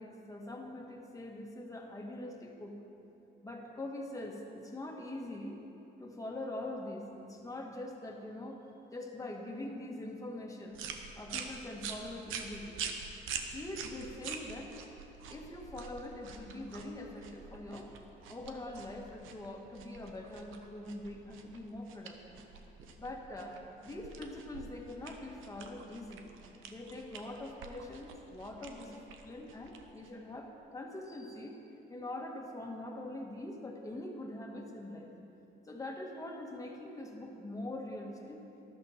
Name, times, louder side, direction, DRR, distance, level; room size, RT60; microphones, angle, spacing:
voice 1, 0.0-2.7 3.4-5.6 6.0-8.7 8.9-10.8 11.1-12.8 13.5-14.8 15.3-17.9 18.3-22.3 23.0-26.3 26.7-31.6 31.9-35.1 35.6-38.4, left 1 dB, 15° left, 0 dB, 1.7 m, -43 dB
sound 1, 10.7-30.3, right 6 dB, 90° right, 1.0 m, -46 dB
13.0 x 12.0 x 4.3 m, 3.0 s
cardioid pair, 90°, 20 cm